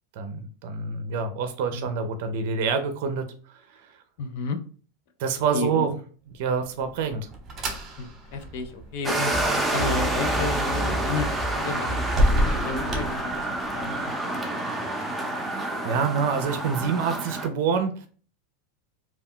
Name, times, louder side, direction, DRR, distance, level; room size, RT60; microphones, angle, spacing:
voice 1, 0.2-3.9 5.2-6.0 6.3-7.3 15.1-18.1, right 6 dB, 65° right, 8 dB, 0.4 m, -27 dB
voice 2, 4.2-4.6 5.5-6.0 8.0-9.3 9.7-12.0 12.4-13.5 13.7-14.3, left 4 dB, 65° left, 7 dB, 0.5 m, -32 dB
sound 1, 6.5-13.9, equal, 35° right, 0.9 m, -31 dB
sound 2, 9.0-17.5, right 1 dB, 5° right, 0.6 m, -28 dB
sound 3, 9.3-15.0, right 1 dB, 30° left, 0.7 m, -33 dB
2.2 x 2.2 x 3.6 m, 0.41 s
supercardioid pair, 120°, 0 cm